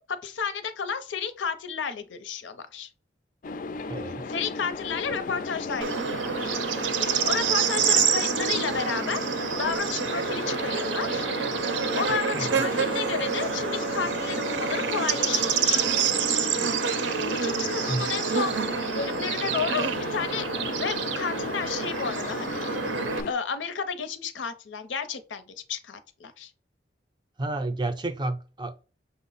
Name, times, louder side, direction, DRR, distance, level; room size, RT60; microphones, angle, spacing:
voice 1, 0.0-2.9 4.3-5.9 6.4-6.6 7.0-11.3 11.7-15.8 17.3-22.7 23.3-26.5, left 6 dB, 90° left, 0.6 m, -32 dB
sound 1, 3.4-23.3, left 4 dB, 45° left, 0.3 m, -35 dB
voice 2, 3.9-4.3 12.3-12.6 17.6-18.1 27.4-28.8, right 2 dB, 25° right, 0.4 m, -31 dB
Bird / Insect, 5.8-23.2, right 7 dB, 85° right, 0.5 m, -27 dB
5.9 x 2.0 x 3.9 m
head